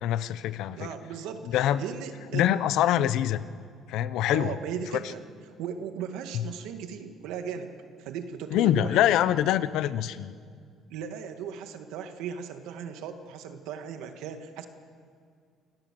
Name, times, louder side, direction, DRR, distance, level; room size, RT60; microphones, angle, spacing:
voice 1, 0.0-0.9 1.5-1.8 2.3-3.4 3.9-4.5 6.3-6.4 8.5-10.3, left 12 dB, 65° left, 14 dB, 0.8 m, -24 dB
voice 2, 0.7-2.5 4.3-5.2 5.6-7.7 8.0-9.1 10.9-14.7, right 7 dB, 85° right, 7 dB, 2.1 m, -37 dB
27.0 x 18.5 x 7.7 m, 2.1 s
cardioid pair, 175°, 0 cm